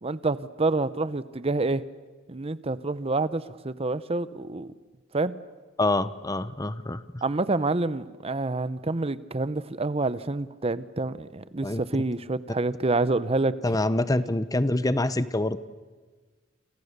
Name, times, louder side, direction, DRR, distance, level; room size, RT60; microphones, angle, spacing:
voice 1, 0.0-1.8 2.3-4.7 5.1-5.3 7.2-13.5, right 3 dB, 30° right, 15 dB, 0.8 m, -27 dB
voice 2, 5.8-7.2 11.6-11.8 13.6-15.6, left 2 dB, 20° left, 14 dB, 1.0 m, -26 dB
29.5 x 27.5 x 6.8 m, 1.4 s
head